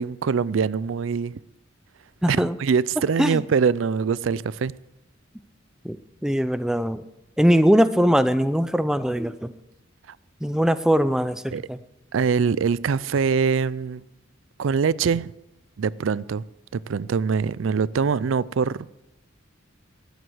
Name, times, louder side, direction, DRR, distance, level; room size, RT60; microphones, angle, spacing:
voice 1, 0.0-1.4 2.3-4.7 10.1-10.2 11.5-11.6 12.1-14.0 14.6-15.3 15.8-16.4 16.7-18.9, right 5 dB, 80° right, 0.4 m, -23 dB
voice 2, 2.2-2.6 3.2-3.4 5.8-6.0 6.2-7.0 7.4-9.5 10.4-11.8, equal, 5° right, 0.5 m, -21 dB
12.5 x 9.4 x 7.8 m
head